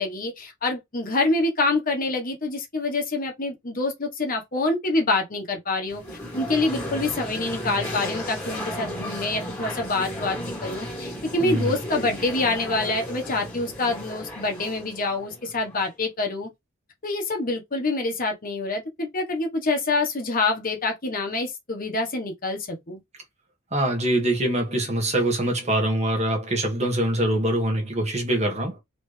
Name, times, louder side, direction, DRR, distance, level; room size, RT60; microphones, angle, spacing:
voice 1, 0.0-6.0 6.3-16.5 17.0-23.0, left 2 dB, 45° left, 1.3 m, -26 dB
sound 1, 5.9-15.9, left 1 dB, 10° left, 2.4 m, -34 dB
voice 2, 11.4-11.7 23.7-28.8, right 1 dB, 35° right, 1.5 m, -24 dB
3.9 x 3.3 x 3.3 m
head